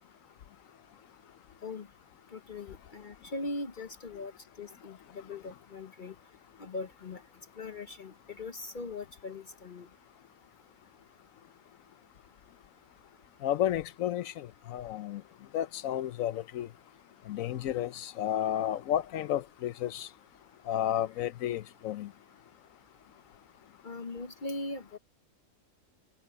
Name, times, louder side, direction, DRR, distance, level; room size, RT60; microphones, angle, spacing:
voice 1, 2.3-4.3 4.6-6.1 6.6-7.2 7.6-9.9 23.8-25.0, left 2 dB, 40° left, 1.0 m, -40 dB
voice 2, 13.4-15.2 15.5-16.7 17.3-20.1 20.7-22.1, left 11 dB, 85° left, 1.1 m, -32 dB
omnidirectional pair, 1.4 m